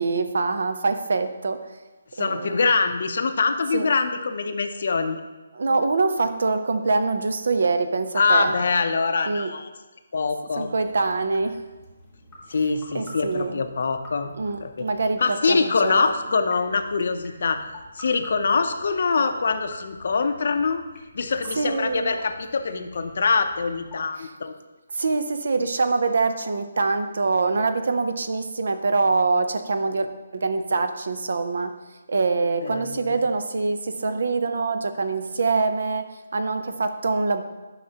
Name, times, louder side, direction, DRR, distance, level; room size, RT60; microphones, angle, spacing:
voice 1, 0.0-1.6 2.2-2.6 3.7-3.9 5.5-8.5 9.3-9.5 10.6-11.6 12.9-13.5 14.4-16.1 21.6-22.1 24.2-24.3 24.9-30.1 30.3-31.7 32.1-37.4, right 3 dB, 60° right, 9 dB, 0.6 m, -24 dB
voice 2, 2.1-5.2 8.1-9.7 10.1-10.7 12.5-14.3 14.6-14.8 15.2-17.7 17.9-20.8 21.1-24.5 32.6-33.2, left 4 dB, 50° left, 8 dB, 0.6 m, -24 dB
sound 1, 10.6-24.0, left 1 dB, 10° left, 1.0 m, -47 dB
11.0 x 5.7 x 2.9 m, 1.2 s
hypercardioid pair, 175°, 0 cm